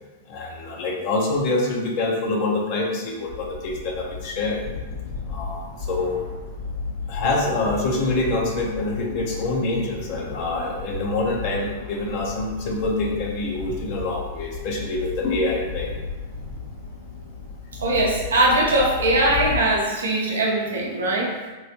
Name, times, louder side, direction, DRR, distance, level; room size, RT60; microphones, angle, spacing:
voice 1, 0.3-4.7 5.3-6.2 7.1-15.9, left 2 dB, 45° left, 0 dB, 0.7 m, -26 dB
sound 1, 3.3-19.6, left 4 dB, 80° left, 1.0 m, -34 dB
voice 2, 17.8-21.3, right 1 dB, 70° right, -2 dB, 0.6 m, -21 dB
3.2 x 3.0 x 2.7 m, 1.2 s
figure-of-eight pair, 95°, 0 cm